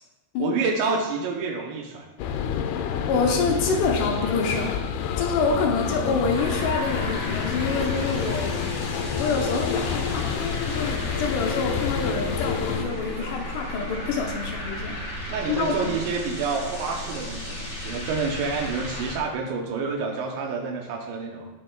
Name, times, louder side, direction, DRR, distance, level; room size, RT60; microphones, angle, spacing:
voice 1, 0.4-2.1 15.3-21.5, right 4 dB, 80° right, 1 dB, 3.0 m, -28 dB
sound 1, 2.2-12.8, left 7 dB, 90° left, 2.3 m, -28 dB
voice 2, 3.1-4.8 5.2-8.5 9.2-10.3 10.6-15.0 15.5-15.9, left 4 dB, 75° left, 1 dB, 2.8 m, -26 dB
sound 2, 6.3-19.2, left 1 dB, 25° left, 1.9 m, -34 dB
18.0 x 7.0 x 2.3 m, 1.1 s
omnidirectional pair, 5.3 m